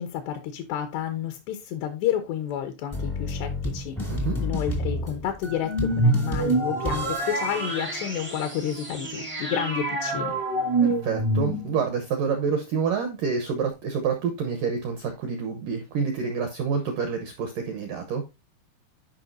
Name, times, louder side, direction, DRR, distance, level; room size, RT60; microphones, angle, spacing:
voice 1, 0.0-4.0 4.4-10.4, left 10 dB, 80° left, 2.9 m, -30 dB
sound 1, 2.9-8.7, left 2 dB, 25° left, 0.4 m, -32 dB
sound 2, 5.6-11.9, right 2 dB, 60° right, 0.3 m, -26 dB
voice 2, 10.8-18.2, right 5 dB, 85° right, 1.9 m, -28 dB
12.0 x 5.2 x 2.6 m
omnidirectional pair, 5.2 m